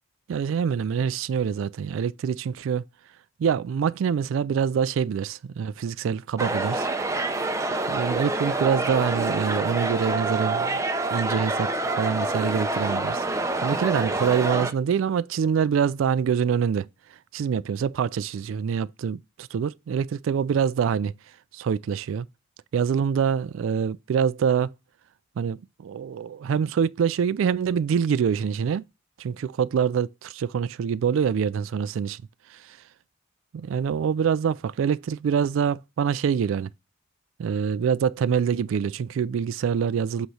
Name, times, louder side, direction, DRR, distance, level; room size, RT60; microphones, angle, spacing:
voice 1, 0.3-2.8 3.4-6.9 7.9-10.8 11.1-11.7 12.0-13.2 13.6-16.9 17.3-21.1 21.5-22.3 22.7-24.7 25.4-28.8 29.2-32.2 33.5-36.7 37.4-40.3, right 7 dB, 80° right, 0.3 m, -25 dB
sound 1, 6.4-14.7, right 2 dB, 15° right, 0.5 m, -27 dB
7.8 x 3.1 x 4.8 m
head